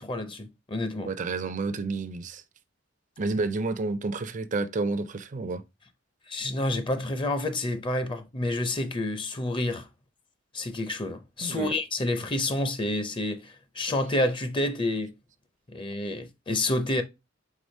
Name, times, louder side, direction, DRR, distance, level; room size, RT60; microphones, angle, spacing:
voice 1, 0.0-1.1 6.3-9.9 10.5-15.1 15.7-17.0, left 1 dB, 25° left, 0.5 m, -29 dB
voice 2, 1.0-2.4 3.2-5.6 11.4-11.7, right 3 dB, 40° right, 0.4 m, -30 dB
4.8 x 3.8 x 2.6 m
head